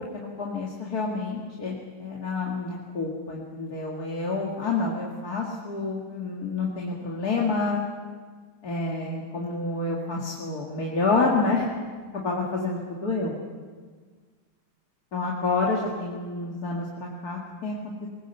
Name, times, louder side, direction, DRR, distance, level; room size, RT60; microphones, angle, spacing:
voice 1, 0.1-7.8 8.6-11.7 12.1-13.3 15.1-17.8, left 3 dB, 45° left, -2 dB, 2.5 m, -28 dB
21.5 x 19.0 x 8.1 m, 1.5 s
omnidirectional pair, 2.3 m